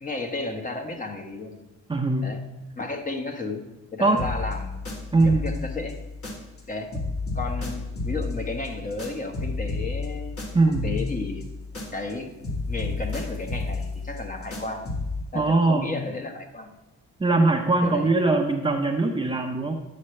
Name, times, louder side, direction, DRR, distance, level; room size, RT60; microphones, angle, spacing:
voice 1, 0.0-1.6 2.2-2.4 2.8-3.6 3.9-4.8 5.2-6.0 6.7-6.9 7.3-10.5 10.8-11.4 11.9-12.3 12.7-14.8 15.3-16.7 17.8-18.1, left 3 dB, 25° left, 4 dB, 1.3 m, -33 dB
voice 2, 1.9-2.3 4.0-4.2 5.1-5.5 10.5-11.0 15.3-15.9 17.2-19.7, right 3 dB, 15° right, 2 dB, 0.8 m, -21 dB
sound 1, 4.2-6.7 6.9-12.2 12.4-15.2, left 3 dB, 50° left, 2.1 m, -32 dB
9.8 x 6.6 x 3.3 m, 0.95 s
cardioid pair, 90°, 30 cm